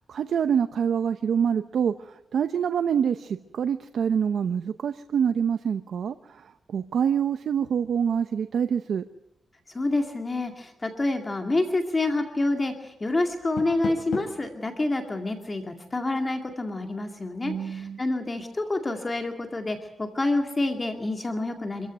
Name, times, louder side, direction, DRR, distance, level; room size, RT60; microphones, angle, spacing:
voice 1, 0.1-9.0 17.4-18.0, right 7 dB, 75° right, 10 dB, 0.8 m, -26 dB
voice 2, 9.7-21.9, left 2 dB, 25° left, 5 dB, 2.2 m, -28 dB
Door, 13.3-14.5, left 6 dB, 90° left, 3.3 m, -35 dB
26.0 x 14.5 x 9.3 m, 0.91 s
cardioid pair, 105°, 0 cm